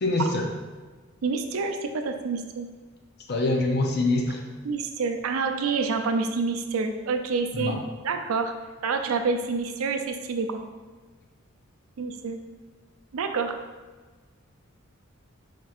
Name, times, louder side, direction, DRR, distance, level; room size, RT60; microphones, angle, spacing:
voice 1, 0.0-0.5 3.3-4.4 7.5-7.8, left 2 dB, 50° left, 2 dB, 0.6 m, -24 dB
voice 2, 1.2-2.7 4.6-7.7 8.0-8.5 8.8-10.6 12.0-12.4 13.1-13.6, right 4 dB, 85° right, 6 dB, 0.4 m, -27 dB
4.4 x 4.2 x 2.4 m, 1.4 s
head